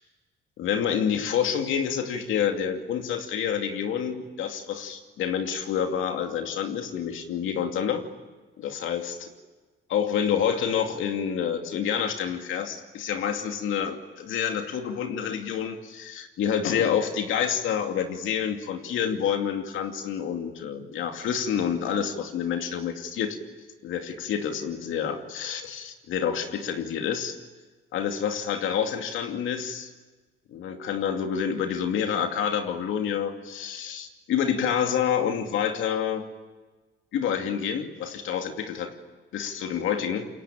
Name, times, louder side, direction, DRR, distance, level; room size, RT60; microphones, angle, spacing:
voice 1, 0.6-8.0 8.6-9.3 9.9-23.4 23.8-27.4 27.9-29.9 30.5-36.2 37.1-38.9 39.3-40.3, left 8 dB, 80° left, 5 dB, 2.6 m, -28 dB
27.5 x 23.0 x 9.0 m, 1.3 s
cardioid pair, 90°, 20 cm